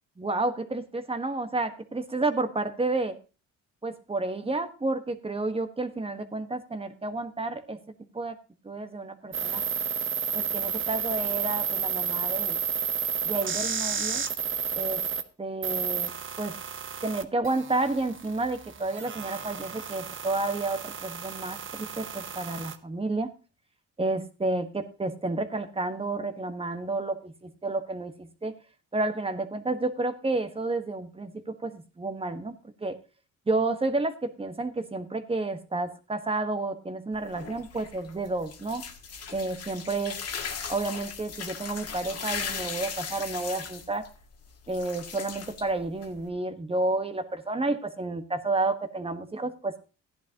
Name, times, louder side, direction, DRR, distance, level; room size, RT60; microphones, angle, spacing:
voice 1, 0.2-3.2 3.8-7.8 8.1-8.4 8.6-9.6 10.3-12.6 13.2-14.2 14.7-15.0 15.4-16.1 16.4-16.6 17.0-23.3 24.0-28.5 28.9-32.5 32.8-33.0 33.5-38.8 39.3-40.2 40.7-44.0 44.7-49.8, right 2 dB, 20° right, 8 dB, 1.4 m, -30 dB
sound 1, 9.3-15.2 15.6-22.8, right 7 dB, 40° right, 1.0 m, -32 dB
sound 2, 37.1-46.3, left 6 dB, 55° left, 1.8 m, -38 dB
15.0 x 10.5 x 2.9 m, 0.33 s
cardioid pair, 90°, 30 cm